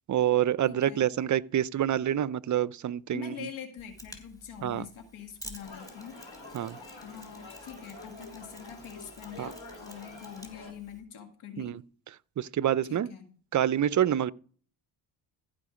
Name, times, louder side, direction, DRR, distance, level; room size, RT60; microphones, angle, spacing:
voice 1, 0.1-3.5 4.6-4.8 6.5-6.8 9.4-9.5 11.6-11.8 12.4-13.1 13.5-14.3, right 10 dB, 40° right, 0.5 m, -27 dB
voice 2, 0.7-1.1 3.1-6.2 7.0-11.8 12.8-13.3, left 8 dB, 80° left, 2.0 m, -44 dB
Mechanisms, 3.8-11.0, right 1 dB, 5° left, 3.3 m, -51 dB
sound 1, 5.6-10.7, left 2 dB, 65° left, 3.9 m, -47 dB
15.0 x 5.1 x 5.0 m
cardioid pair, 65°, 48 cm